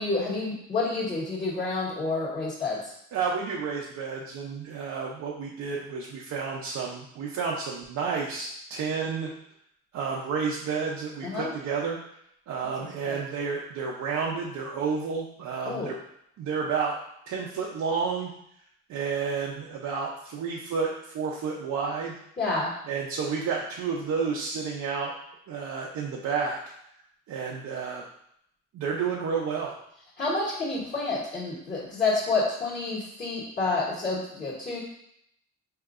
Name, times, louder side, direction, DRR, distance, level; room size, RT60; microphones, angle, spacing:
voice 1, 0.0-2.8 11.2-11.5 13.0-13.2 15.6-15.9 22.4-22.7 30.2-34.8, left 3 dB, 30° left, -7 dB, 1.4 m, -29 dB
voice 2, 3.1-9.3 9.9-12.0 12.5-16.0 16.4-17.0 17.3-18.3 18.9-22.2 22.9-25.1 25.5-26.6 27.3-28.0 28.7-29.7, right 5 dB, 70° right, -3 dB, 0.6 m, -30 dB
4.4 x 2.8 x 2.5 m, 0.74 s
cardioid pair, 90°, 30 cm